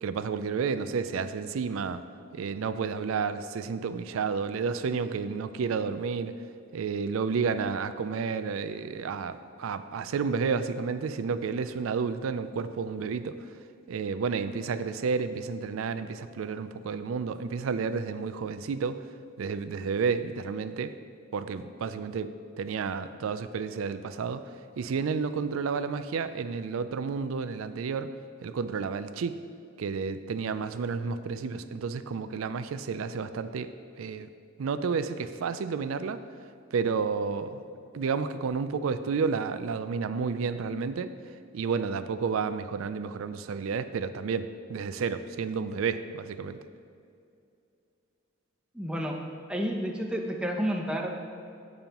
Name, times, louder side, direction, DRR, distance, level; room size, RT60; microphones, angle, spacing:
voice 1, 0.0-2.0 2.3-6.4 6.7-13.6 13.9-19.0 19.4-20.9 21.3-28.1 28.4-29.4 29.8-33.7 34.0-34.3 34.6-36.2 36.7-37.6 37.9-46.6, right 5 dB, 90° right, 11 dB, 0.4 m, -31 dB
voice 2, 48.7-49.2 49.5-51.1, equal, 5° right, 0 dB, 0.8 m, -30 dB
16.0 x 5.4 x 3.0 m, 2.5 s
head